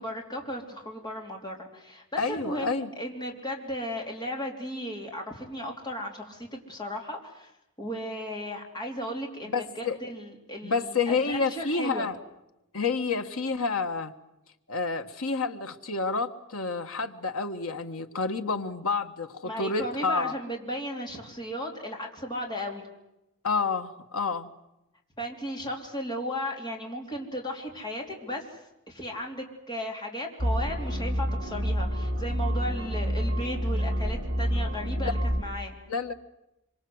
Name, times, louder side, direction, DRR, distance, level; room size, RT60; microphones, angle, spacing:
voice 1, 0.0-7.5 7.8-12.1 19.5-22.9 25.2-35.8, equal, 20° left, 1 dB, 3.7 m, -35 dB
voice 2, 2.2-2.9 9.5-10.0 10.6-12.2 12.7-14.1 14.7-20.3 23.4-24.5 35.0-35.1 35.9-36.1, left 4 dB, 75° left, 7 dB, 1.6 m, -29 dB
sound 1, 30.4-35.4, equal, 60° right, 4.1 m, -28 dB
25.5 x 24.5 x 8.0 m, 0.92 s
head